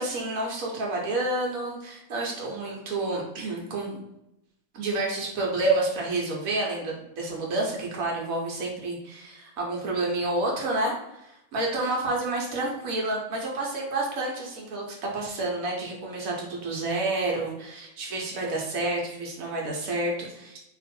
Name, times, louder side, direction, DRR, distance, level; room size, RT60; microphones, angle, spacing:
voice 1, 0.0-4.0 4.7-11.2 11.5-20.6, right 2 dB, 85° right, -2 dB, 1.3 m, -29 dB
3.0 x 2.5 x 4.2 m, 0.86 s
omnidirectional pair, 1.4 m